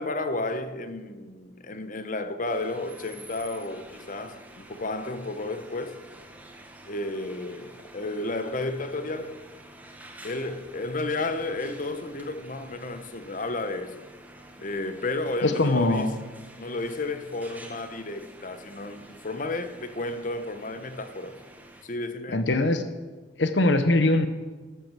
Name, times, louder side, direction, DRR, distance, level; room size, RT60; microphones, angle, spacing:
voice 1, 0.0-6.0 6.9-9.4 10.2-14.1 14.6-16.2 16.6-21.4 21.8-22.4, left 2 dB, 45° left, 1.0 m, -32 dB
sound 1, 2.4-21.8, right 1 dB, 10° right, 1.4 m, -49 dB
voice 2, 15.4-16.2 22.3-22.8 23.4-24.3, left 2 dB, 70° left, 1.0 m, -22 dB
13.0 x 9.1 x 7.6 m
head